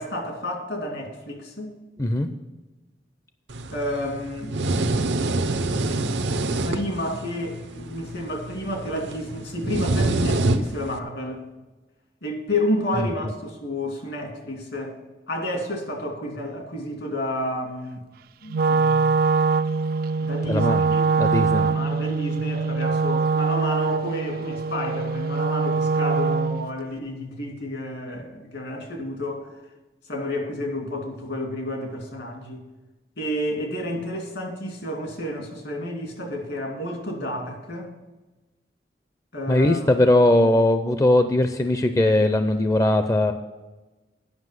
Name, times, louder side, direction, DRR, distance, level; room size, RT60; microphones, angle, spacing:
voice 1, 0.0-1.7 3.7-4.6 6.6-11.4 12.2-15.0 15.3-18.1 18.4-19.1 20.2-29.6 30.1-32.7 33.2-37.9 39.3-39.8, left 1 dB, 75° left, 1 dB, 2.5 m, -30 dB
voice 2, 2.0-2.3 13.0-13.1 20.5-20.9 21.2-21.6 39.5-43.3, left 1 dB, 20° left, 8 dB, 0.4 m, -19 dB
sound 1, 3.5-11.0, right 2 dB, 85° right, 0.7 m, -26 dB
Wind instrument woodwind instrument, 18.5-26.7, right 4 dB, 55° right, 0.3 m, -23 dB
9.6 x 5.9 x 7.6 m, 1.2 s
head